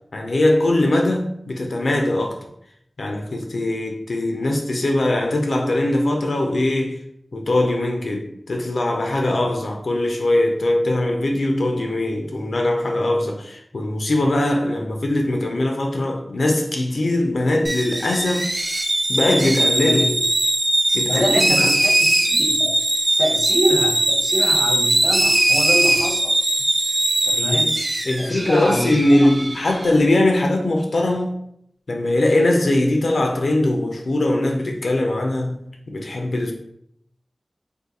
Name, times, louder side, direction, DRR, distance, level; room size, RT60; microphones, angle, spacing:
voice 1, 0.1-2.5 3.0-7.0 7.3-18.5 19.1-20.1 20.9-21.7 27.4-27.6 28.0-31.4 31.9-36.5, left 1 dB, 85° left, 0.4 m, -21 dB
sound 1, 17.6-29.9, right 1 dB, 60° right, 0.6 m, -20 dB
voice 2, 19.8-20.1 21.1-21.9 22.3-22.8 23.2-26.3 27.2-27.7 28.2-29.3, equal, 10° left, 0.8 m, -25 dB
2.5 x 2.5 x 3.9 m
wide cardioid pair, 50°, 0 cm